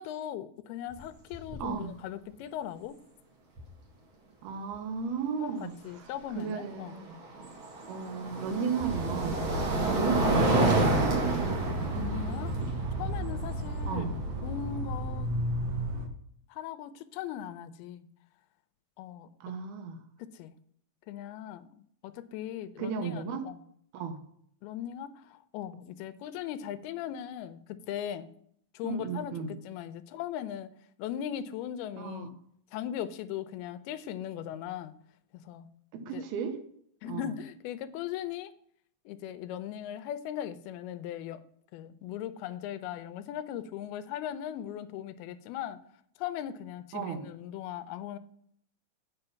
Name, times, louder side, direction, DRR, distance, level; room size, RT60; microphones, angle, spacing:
voice 1, 0.0-3.0 5.4-7.0 11.9-15.3 16.5-18.1 19.0-19.3 20.2-20.6 21.1-23.6 24.6-28.3 28.7-30.7 31.0-32.3 32.7-34.9 35.4-35.7 36.1-36.3 37.0-38.5 39.1-41.4 41.7-45.8 46.2-48.2, left 10 dB, 90° left, 13 dB, 2.6 m, -39 dB
sound 1, 0.9-1.0 1.3-1.7 3.6-3.7 6.7-14.8, right 2 dB, 40° right, 2.2 m, -30 dB
voice 2, 1.6-1.9 4.4-6.1 6.4-7.2 7.9-11.3 13.9-14.2 19.4-20.0 22.8-23.5 23.9-24.2 28.8-29.5 32.0-32.3 35.9-36.6 37.1-37.3 46.9-47.3, right 6 dB, 85° right, 8 dB, 3.1 m, -35 dB
sound 2, 8.8-16.1, right 1 dB, 70° right, 1.5 m, -33 dB
8.9 x 5.6 x 5.7 m, 0.67 s
omnidirectional pair, 4.4 m